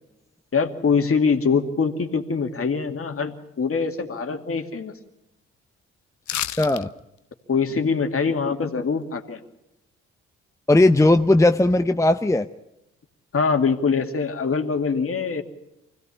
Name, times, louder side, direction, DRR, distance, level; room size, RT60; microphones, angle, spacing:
voice 1, 0.5-4.9 7.5-9.4 13.3-15.4, left 5 dB, 40° left, 5 dB, 2.4 m, -23 dB
sound 1, 6.2-6.8 7.2-7.3, left 12 dB, 60° left, 0.8 m, -29 dB
voice 2, 6.6-6.9 10.7-12.5, left 2 dB, 10° left, 8 dB, 0.8 m, -17 dB
25.0 x 16.5 x 8.5 m, 0.88 s
hypercardioid pair, 45°, 33 cm